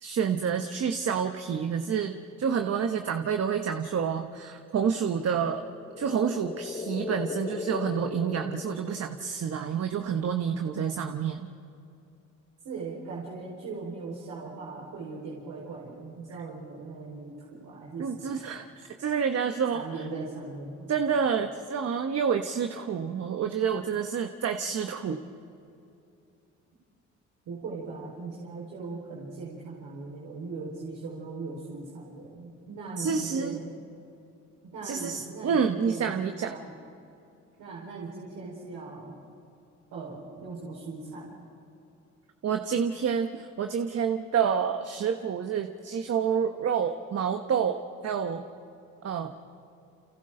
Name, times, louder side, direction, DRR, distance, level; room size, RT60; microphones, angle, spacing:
voice 1, 0.0-5.6 6.0-11.5 18.0-20.0 20.9-25.2 33.0-33.6 34.8-36.5 42.4-48.4 49.0-49.3, right 7 dB, 55° right, 6 dB, 1.2 m, -28 dB
sound 1, 5.6-9.6, left 5 dB, 25° left, 0.8 m, -38 dB
voice 2, 12.6-18.4 19.7-20.9 27.4-33.8 34.6-36.1 36.4-36.8 37.6-39.2 39.9-41.3, right 3 dB, 90° right, -5 dB, 4.7 m, -39 dB
30.0 x 28.5 x 3.9 m, 2.7 s
cardioid pair, 90°, 30 cm